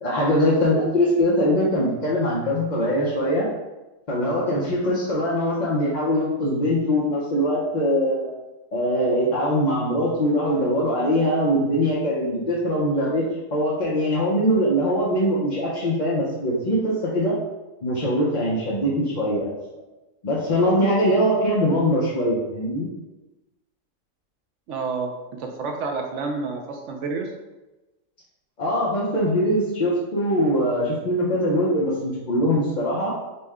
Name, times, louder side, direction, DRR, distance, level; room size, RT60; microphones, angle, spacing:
voice 1, 0.0-3.5 4.1-8.3 8.7-13.2 13.5-17.4 17.8-19.5 20.2-22.9 28.6-33.1, equal, 40° left, -6 dB, 0.7 m, -22 dB
voice 2, 24.7-25.1 25.4-27.3, right 4 dB, 70° right, 3 dB, 0.8 m, -29 dB
5.4 x 2.2 x 3.5 m, 1.1 s
omnidirectional pair, 1.4 m